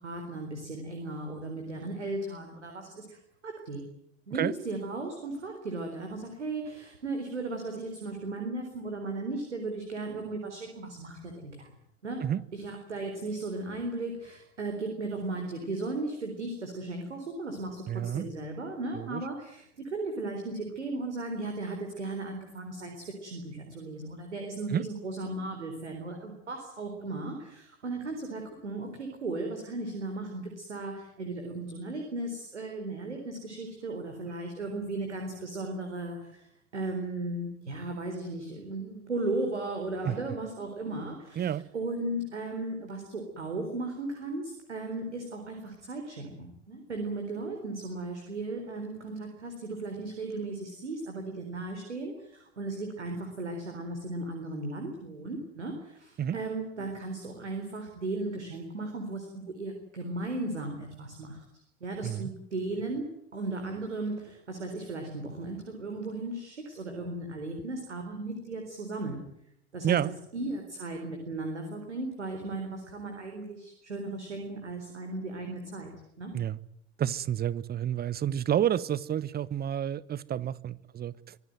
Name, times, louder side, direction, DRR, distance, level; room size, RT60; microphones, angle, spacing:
voice 1, 0.0-3.2 3.4-3.9 4.3-11.7 12.0-36.5 36.7-61.4 61.8-63.1 63.3-69.2 69.7-70.0 70.3-75.9 76.2-76.3, right 2 dB, 85° right, 4.2 m, -36 dB
voice 2, 17.9-18.3 18.9-19.2 24.7-24.9 40.0-40.2 41.4-41.6 56.2-56.4 62.0-62.3 69.8-70.1 76.3-76.6 77.0-81.4, right 10 dB, 25° right, 1.0 m, -30 dB
25.0 x 17.0 x 9.3 m
figure-of-eight pair, 75°, 34 cm